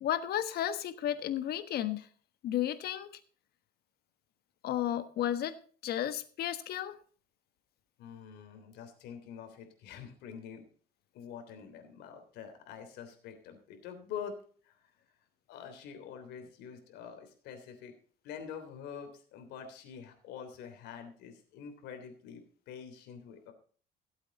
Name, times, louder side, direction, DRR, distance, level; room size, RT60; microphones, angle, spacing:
voice 1, 0.0-2.1 2.4-3.1 4.6-5.5 5.8-7.0, left 11 dB, 65° left, 11 dB, 1.3 m, -33 dB
voice 2, 8.0-10.6 11.1-14.3 14.6-14.8 15.5-17.9 18.2-23.5, left 7 dB, 85° left, 6 dB, 3.3 m, -46 dB
16.5 x 8.2 x 4.1 m, 0.43 s
cardioid pair, 110°, 17 cm